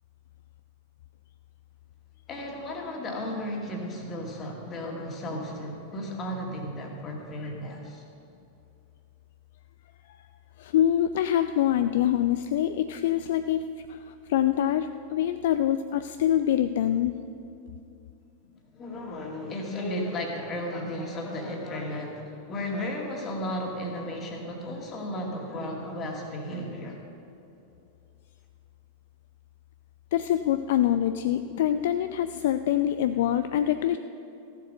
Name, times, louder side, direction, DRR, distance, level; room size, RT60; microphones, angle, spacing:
voice 1, 2.3-8.0 18.7-27.0, left 1 dB, 25° left, 1 dB, 2.1 m, -34 dB
voice 2, 10.6-13.6 13.9-17.2 30.1-34.0, left 11 dB, 55° left, 10 dB, 0.3 m, -25 dB
14.0 x 7.6 x 6.5 m, 2.7 s
figure-of-eight pair, 90°, 0 cm